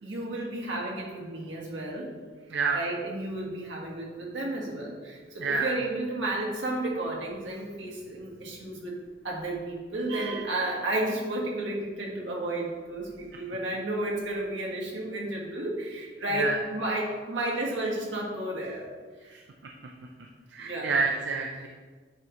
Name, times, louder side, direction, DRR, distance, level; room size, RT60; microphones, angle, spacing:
voice 1, 0.0-2.1 2.7-9.0 9.2-18.9 19.2-19.3 20.6-21.0, right 1 dB, 80° right, -2 dB, 1.4 m, -32 dB
voice 2, 2.5-2.8 5.4-5.7 16.3-16.5 20.5-21.7, right 4 dB, 65° right, 2 dB, 0.4 m, -27 dB
8.6 x 3.0 x 3.7 m, 1.5 s
head